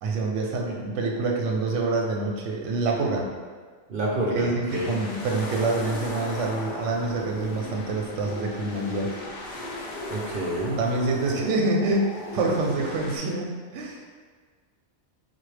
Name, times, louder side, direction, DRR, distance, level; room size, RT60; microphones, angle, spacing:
voice 1, 0.0-3.3 4.3-9.2 10.8-14.1, right 2 dB, 90° right, 0 dB, 0.9 m, -26 dB
voice 2, 3.9-4.9 10.1-10.8, right 1 dB, 55° right, -4 dB, 0.7 m, -28 dB
sound 1, 4.7-13.2, left 2 dB, 85° left, 1.0 m, -41 dB
sound 2, 4.9-13.1, left 2 dB, 50° left, 0.6 m, -39 dB
4.4 x 2.1 x 3.2 m, 1.5 s
omnidirectional pair, 1.2 m